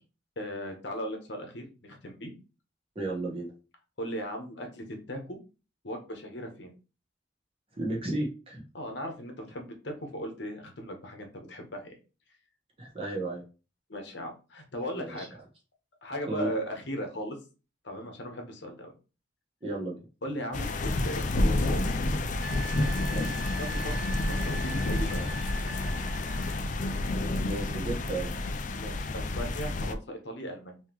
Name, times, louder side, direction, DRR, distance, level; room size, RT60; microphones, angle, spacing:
voice 1, 0.4-2.3 4.0-5.4 5.8-6.7 8.7-12.0 13.9-15.4 16.0-17.4 17.8-18.9 20.2-21.8 23.6-24.0 24.3-25.3 28.8-30.8, equal, 65° left, 4 dB, 1.0 m, -37 dB
voice 2, 2.9-3.5 7.8-8.6 12.8-13.4 14.9-15.3 16.3-16.5 19.6-20.1 23.0-23.3 27.4-28.3, right 2 dB, 30° right, -1 dB, 1.1 m, -33 dB
sound 1, 20.5-29.9, left 2 dB, 40° left, 0.4 m, -29 dB
Wind instrument woodwind instrument, 22.4-26.7 29.3-29.5, right 2 dB, 65° right, 1.0 m, -42 dB
3.6 x 3.0 x 3.0 m, 0.33 s
head